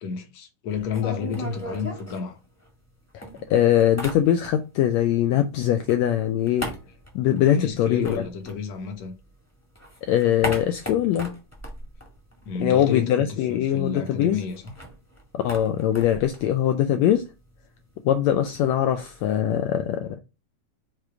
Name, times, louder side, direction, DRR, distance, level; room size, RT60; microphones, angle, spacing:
voice 1, 0.0-2.4 7.5-9.1 12.5-14.7, left 6 dB, 60° left, 2.1 m, -31 dB
sound 1, 0.7-2.9 3.2-4.8 5.1-9.3 9.6-12.9 13.1-13.2 13.5-19.3, equal, 10° left, 0.9 m, -38 dB
voice 2, 3.1-6.7 7.1-8.2 10.0-11.3 12.6-14.4 15.3-17.3 18.0-20.2, left 11 dB, 85° left, 1.6 m, -22 dB
6.8 x 3.1 x 4.7 m
omnidirectional pair, 3.7 m